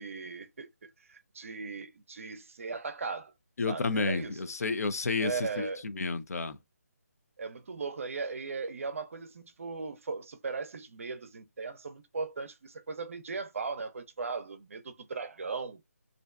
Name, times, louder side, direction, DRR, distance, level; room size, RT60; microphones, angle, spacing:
voice 1, 0.0-3.3 3.7-4.5 5.2-5.8 7.4-15.8, right 4 dB, 55° right, 0.5 m, -38 dB
voice 2, 3.6-6.6, left 4 dB, 70° left, 0.5 m, -31 dB
2.5 x 2.2 x 2.3 m
figure-of-eight pair, 165°, 9 cm